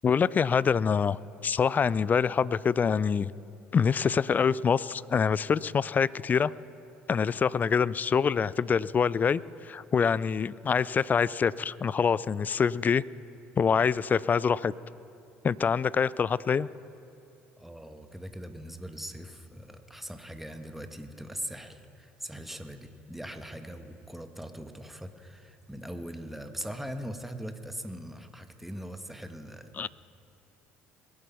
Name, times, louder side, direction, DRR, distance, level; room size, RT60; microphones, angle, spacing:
voice 1, 0.0-3.3 3.7-6.5 7.1-13.0 13.6-14.7 15.4-16.7 29.8-29.9, left 6 dB, 30° left, 21 dB, 0.4 m, -25 dB
voice 2, 17.6-29.9, equal, 5° right, 7 dB, 1.3 m, -41 dB
22.0 x 8.4 x 5.8 m, 2.5 s
hypercardioid pair, 60°, 6 cm